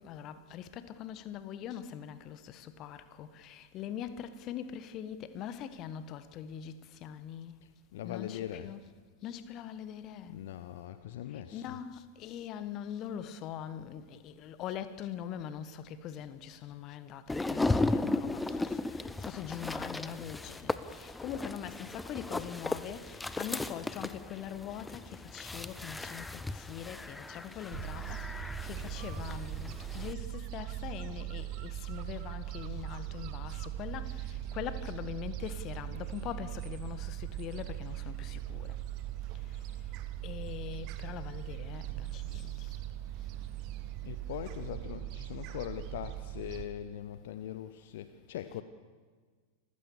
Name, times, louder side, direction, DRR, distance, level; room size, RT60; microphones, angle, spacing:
voice 1, 0.0-7.6 8.0-8.8 9.2-10.4 11.3-38.8 39.5-39.6 40.2-42.8, left 9 dB, 35° left, 1.3 m, -42 dB
voice 2, 7.6-8.7 10.3-11.8 44.0-48.6, left 11 dB, 55° left, 0.9 m, -41 dB
sound 1, 17.3-30.1, left 2 dB, 10° left, 0.8 m, -36 dB
Gull seagull, 27.7-46.7, right 13 dB, 40° right, 1.2 m, -40 dB
27.0 x 15.5 x 7.0 m
figure-of-eight pair, 90°, 0 cm